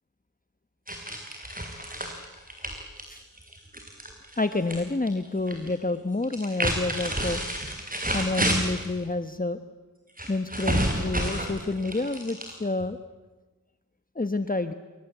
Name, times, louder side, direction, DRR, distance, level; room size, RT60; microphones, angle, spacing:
sound 1, 0.9-4.8 5.1-5.7 6.2-8.9 10.2-12.9, right 1 dB, 25° right, 6.5 m, -30 dB
voice 1, 4.4-7.4 8.1-9.6 10.3-13.0 14.1-14.7, left 2 dB, 25° left, 9 dB, 1.2 m, -28 dB
27.5 x 25.5 x 8.2 m, 1.2 s
wide cardioid pair, 45°, 35 cm